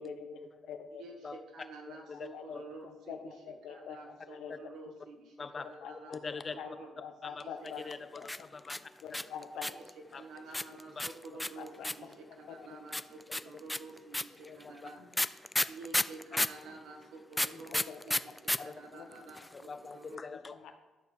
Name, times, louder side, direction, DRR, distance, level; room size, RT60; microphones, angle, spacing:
voice 1, 0.0-0.4 0.7-1.0 1.9-2.6 3.1-4.5 5.8-6.2 6.6-6.7 7.0-7.8 8.1-8.3 9.0-9.7 11.6-12.1 12.5-12.8 14.5-14.6 15.0-15.1 17.9-18.0 18.9-19.1 20.6-20.7, left 7 dB, 80° left, 5 dB, 1.2 m, -45 dB
voice 2, 1.0-6.1 6.5-7.9 9.7-9.8 10.1-20.2, right 3 dB, 80° right, 2 dB, 1.8 m, -50 dB
voice 3, 2.1-2.6 4.5-4.6 5.4-5.7 6.1-6.6 7.2-8.9 10.1-10.2 14.6-14.8 16.3-16.4 17.5-17.8 18.6-18.8 19.5-20.5, left 4 dB, 35° left, 11 dB, 0.7 m, -43 dB
sound 1, 8.2-9.9 10.5-12.1 12.9-16.6 17.3-18.6 18.8-18.9 19.1-19.6, left 1 dB, 10° left, 0.3 m, -31 dB
12.0 x 4.7 x 6.6 m, 1.2 s
cardioid pair, 90°, 0 cm